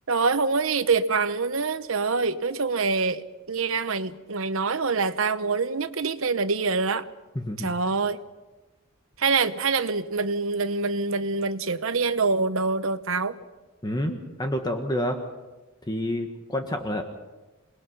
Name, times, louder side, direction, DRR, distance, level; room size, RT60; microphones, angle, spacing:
voice 1, 0.1-7.1 7.6-8.2 9.2-13.4, right 4 dB, 65° right, 12 dB, 1.0 m, -25 dB
voice 2, 7.3-7.7 13.8-15.2 15.9-17.0, left 1 dB, 20° left, 4 dB, 1.4 m, -28 dB
27.5 x 20.5 x 5.5 m, 1.1 s
head